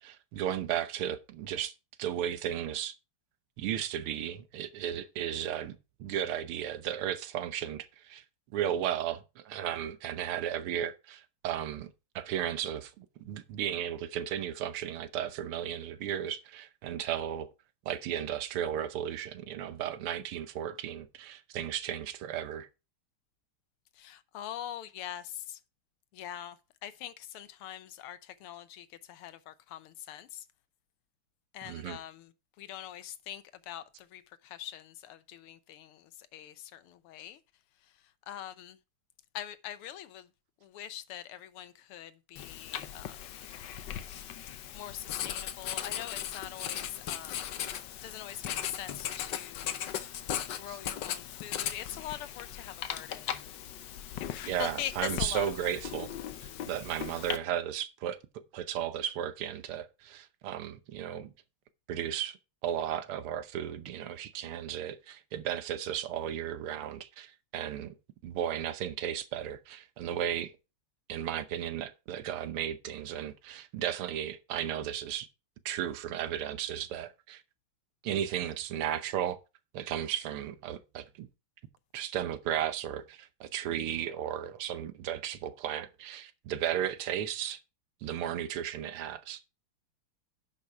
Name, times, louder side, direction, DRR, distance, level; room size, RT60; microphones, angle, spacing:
voice 1, 0.0-1.7 2.0-2.9 3.6-8.2 8.5-17.5 17.9-22.7 31.6-32.0 50.7-50.8 54.5-56.1 56.4-61.3 61.9-62.4 62.6-68.0 68.2-70.5 71.1-75.3 75.7-77.4 78.0-79.4 79.7-81.3 81.9-87.6 88.0-89.4, right 10 dB, 80° right, 1.8 m, -35 dB
voice 2, 24.0-25.6 26.1-26.6 26.8-30.4 31.5-32.3 32.6-33.8 34.1-37.4 38.3-38.8 39.3-40.3 40.6-43.5 44.7-47.6 48.0-49.8 50.6-53.3 54.2-55.8, left 11 dB, 85° left, 1.7 m, -43 dB
Writing, 42.4-57.4, left 10 dB, 65° left, 1.3 m, -38 dB
10.5 x 5.6 x 4.7 m
omnidirectional pair, 2.4 m